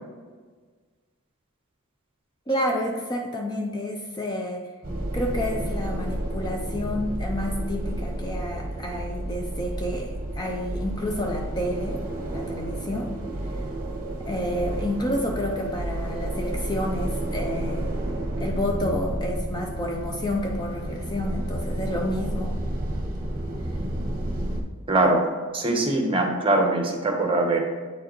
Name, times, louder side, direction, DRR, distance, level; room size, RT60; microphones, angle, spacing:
voice 1, 2.5-4.7 5.1-12.0 12.3-13.1 14.2-17.9 18.4-22.6, left 1 dB, 20° left, 2 dB, 0.5 m, -30 dB
sound 1, 4.8-24.6, right 1 dB, 40° right, 1.0 m, -31 dB
voice 2, 24.9-25.3 25.5-27.6, right 2 dB, 25° right, 2 dB, 0.9 m, -22 dB
8.3 x 4.6 x 3.1 m, 1.5 s
head